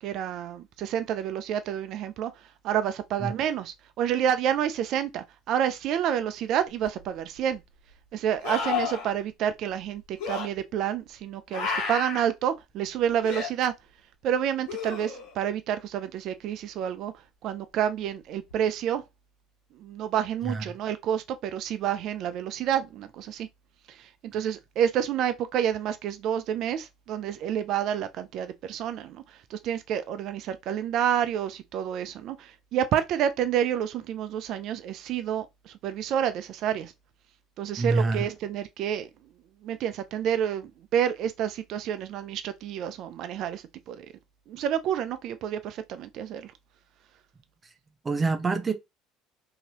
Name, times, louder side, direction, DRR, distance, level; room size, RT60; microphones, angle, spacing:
voice 1, 0.0-7.6 8.1-13.7 14.2-19.0 19.8-23.5 23.9-36.9 37.6-39.1 39.6-44.1 44.5-46.5, right 9 dB, 60° right, 0.4 m, -29 dB
sound 1, 6.8-6.9 8.4-9.1 10.2-10.5 11.5-12.3 13.2-13.5 14.7-15.4 18.5-18.6, left 6 dB, 75° left, 1.2 m, -31 dB
voice 2, 37.8-38.2 48.0-48.7, right 3 dB, 25° right, 0.8 m, -26 dB
2.8 x 2.8 x 2.8 m
supercardioid pair, 80°, 0 cm